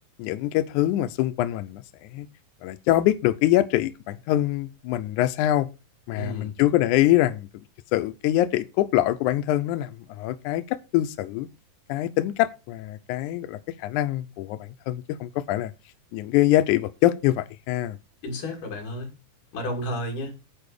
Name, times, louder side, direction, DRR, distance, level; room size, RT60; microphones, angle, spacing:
voice 1, 0.2-1.8 2.1-2.3 2.6-5.7 6.1-7.5 7.9-11.5 11.9-15.7 16.1-18.0, left 14 dB, 80° left, 1.8 m, -24 dB
voice 2, 6.1-6.6 18.2-19.1 19.5-20.3, left 1 dB, 65° left, 3.7 m, -32 dB
9.1 x 4.8 x 6.5 m
omnidirectional pair, 4.1 m